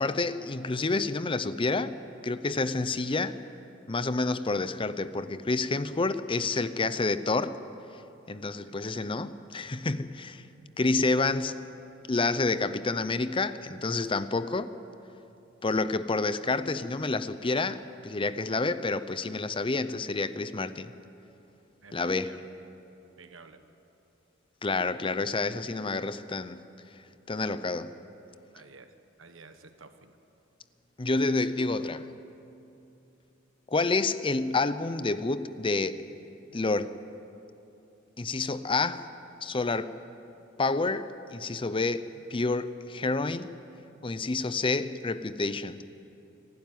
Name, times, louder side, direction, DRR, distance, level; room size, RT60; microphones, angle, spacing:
voice 1, 0.0-2.0 2.2-3.4 3.9-7.6 8.3-10.4 10.8-11.6 12.1-14.7 15.6-20.9 21.9-22.4 24.6-26.6 27.3-27.9 31.0-32.1 33.7-36.0 36.5-37.0 38.2-39.1 39.4-40.0 40.6-43.5 44.0-45.8, left 3 dB, 25° left, 0.6 m, -29 dB
voice 2, 23.0-23.6 28.5-28.9 29.2-30.2, right 4 dB, 85° right, 1.4 m, -51 dB
26.5 x 12.0 x 9.4 m
head